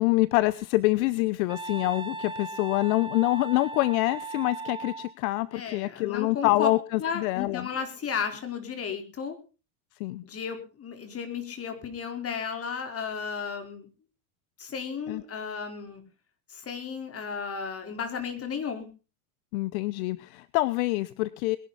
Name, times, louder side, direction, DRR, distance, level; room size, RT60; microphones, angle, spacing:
voice 1, 0.0-7.7 10.0-10.2 15.1-15.2 19.5-21.6, left 20 dB, 65° left, 18 dB, 0.9 m, -26 dB
Wind instrument woodwind instrument, 1.5-5.1, right 3 dB, 10° right, 1.9 m, -37 dB
voice 2, 5.5-6.7 7.0-9.4 10.2-13.9 14.6-16.0 16.5-18.9, left 6 dB, 30° left, 6 dB, 4.3 m, -34 dB
21.5 x 11.0 x 4.1 m, 0.33 s
supercardioid pair, 110°, 46 cm